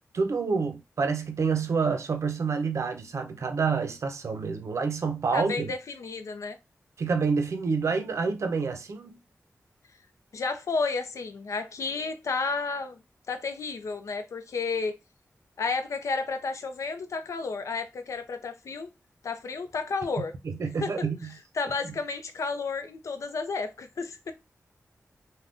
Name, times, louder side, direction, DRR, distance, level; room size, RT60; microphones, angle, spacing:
voice 1, 0.1-5.7 7.0-9.2 20.4-21.3 21.8-21.9, right 5 dB, 70° right, 0.5 m, -28 dB
voice 2, 5.3-6.6 10.3-13.0 13.3-15.0 15.6-18.9 19.2-20.3 20.8-21.0 21.5-24.3, left 4 dB, 80° left, 0.5 m, -32 dB
2.5 x 2.2 x 3.5 m
wide cardioid pair, 85°, 5 cm